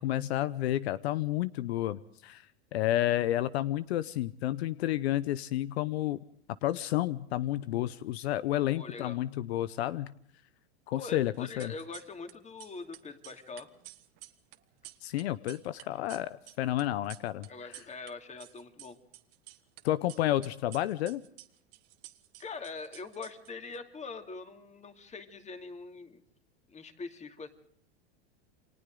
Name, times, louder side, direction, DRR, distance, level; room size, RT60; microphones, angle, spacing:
voice 1, 0.0-2.4 2.7-6.2 6.6-10.1 10.9-11.7 15.0-17.5 19.8-21.2, left 14 dB, 75° left, 16 dB, 0.9 m, -30 dB
voice 2, 8.7-9.2 11.0-13.7 17.5-19.0 22.4-26.2 26.7-27.5, left 4 dB, 20° left, 7 dB, 2.7 m, -43 dB
sound 1, 11.4-12.3 12.6-18.1 18.4-19.8 20.1-23.8, right 18 dB, 50° right, 1.6 m, -51 dB
29.0 x 24.0 x 3.8 m, 0.67 s
hypercardioid pair, 110°, 32 cm